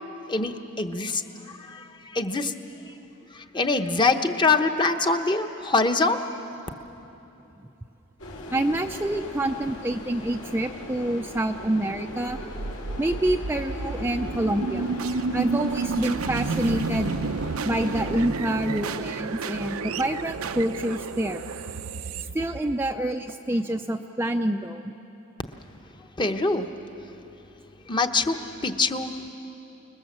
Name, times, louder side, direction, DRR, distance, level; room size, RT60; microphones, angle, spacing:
voice 1, 0.3-1.2 1.6-2.5 3.3-6.2 26.2-26.7 27.9-29.1, left 3 dB, 20° left, 6 dB, 0.9 m, -24 dB
sound 1, 8.2-18.2, left 1 dB, 85° left, 4.5 m, -39 dB
voice 2, 8.5-12.4 13.0-15.0 15.3-17.1 17.6-21.4 22.3-24.9, right 1 dB, 10° right, 4 dB, 0.4 m, -27 dB
sound 2, 12.3-23.3, right 4 dB, 75° right, 0.6 m, -31 dB
28.0 x 20.5 x 7.4 m, 3.0 s
head